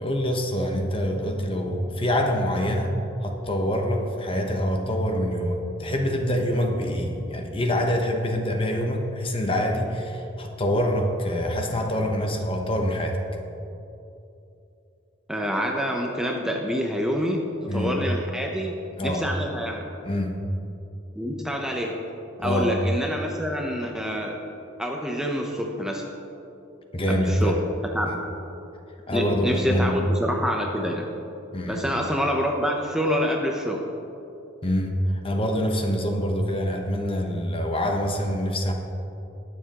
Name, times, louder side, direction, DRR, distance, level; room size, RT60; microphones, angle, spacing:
voice 1, 0.0-3.0 3.2-13.2 17.7-18.0 19.0-19.3 20.0-20.4 22.4-22.8 26.9-27.6 28.1-28.2 29.1-30.0 31.5-31.8 34.6-38.7, equal, 30° left, 3 dB, 0.9 m, -25 dB
voice 2, 15.3-19.9 21.2-22.0 22.4-24.4 24.8-26.0 27.1-27.6 27.9-28.1 29.1-31.1 31.7-33.8, equal, 5° right, 0 dB, 0.7 m, -27 dB
20.5 x 7.3 x 3.0 m, 2.8 s
head